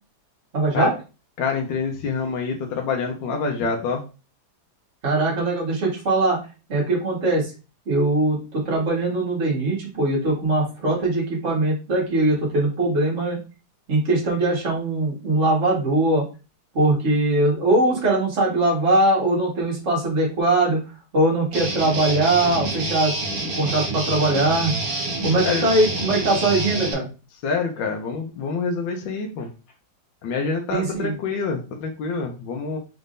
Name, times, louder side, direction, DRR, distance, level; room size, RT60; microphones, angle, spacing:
voice 1, 0.5-0.9 5.0-6.4 6.7-7.5 7.9-13.4 13.9-16.3 16.7-20.8 21.1-23.1 23.5-24.7 25.2-27.1 30.7-31.1, right 2 dB, 40° right, -4 dB, 1.8 m, -21 dB
voice 2, 1.4-4.0 25.4-25.6 27.4-29.5 30.2-32.8, left 5 dB, 75° left, 2 dB, 1.4 m, -26 dB
Guitar, 21.5-26.9, right 2 dB, 60° right, 1.3 m, -27 dB
4.3 x 3.5 x 2.6 m, 0.32 s
omnidirectional pair, 2.0 m